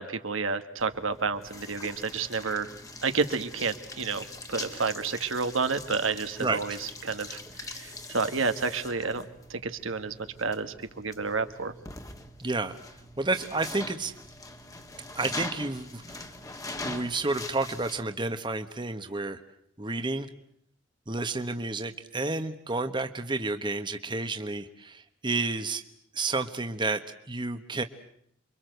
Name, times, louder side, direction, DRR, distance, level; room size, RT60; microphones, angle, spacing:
voice 1, 0.0-2.7 3.0-9.2 9.5-11.7, right 4 dB, 80° right, 8 dB, 1.7 m, -30 dB
sound 1, 0.8-18.0, left 2 dB, 15° left, 1.7 m, -42 dB
voice 2, 12.4-12.8 13.2-14.1 15.1-16.0 16.8-19.4 19.8-20.3 21.1-25.8 26.1-27.0 27.3-27.8, right 3 dB, 25° right, 8 dB, 1.3 m, -30 dB
28.5 x 24.0 x 8.0 m, 0.69 s
head